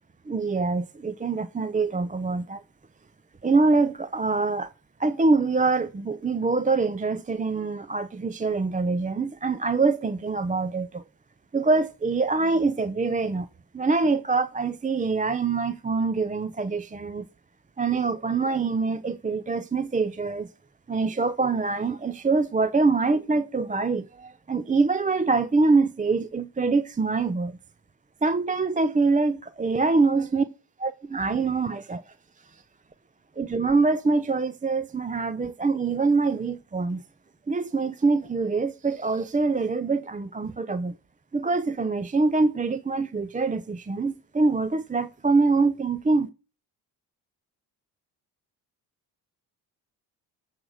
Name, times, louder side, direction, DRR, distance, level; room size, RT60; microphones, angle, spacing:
voice 1, 0.3-2.6 3.4-4.7 5.0-11.0 11.5-13.5 13.7-17.3 17.8-20.5 20.9-27.6 28.2-30.4 30.8-32.0 32.5-32.6 33.4-37.0 37.5-40.9 41.3-46.3, right 3 dB, 20° right, 0.6 m, -24 dB
13.5 x 6.4 x 5.0 m
supercardioid pair, 70°, 44 cm